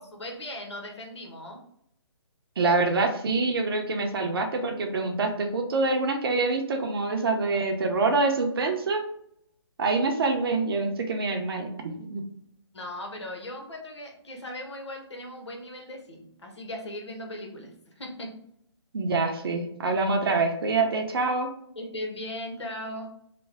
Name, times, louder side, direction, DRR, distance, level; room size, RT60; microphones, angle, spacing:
voice 1, 0.0-1.6 12.7-18.3 21.8-23.1, left 1 dB, 75° left, 1 dB, 1.2 m, -38 dB
voice 2, 2.6-9.0 9.8-12.2 18.9-21.5, right 3 dB, 55° right, 4 dB, 0.7 m, -26 dB
3.3 x 2.3 x 3.5 m, 0.70 s
figure-of-eight pair, 145°, 15 cm